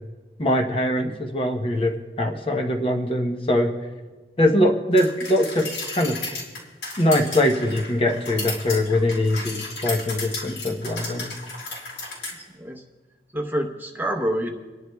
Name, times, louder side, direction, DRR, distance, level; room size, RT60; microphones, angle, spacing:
voice 1, 0.4-3.7 4.4-6.2 7.0-11.3, left 1 dB, 30° left, 3 dB, 0.8 m, -22 dB
sound 1, 5.0-12.3, left 3 dB, 85° left, 4.3 m, -34 dB
voice 2, 12.4-12.8 13.3-14.6, equal, 10° right, 2 dB, 0.8 m, -27 dB
29.0 x 11.0 x 2.3 m, 1.3 s
head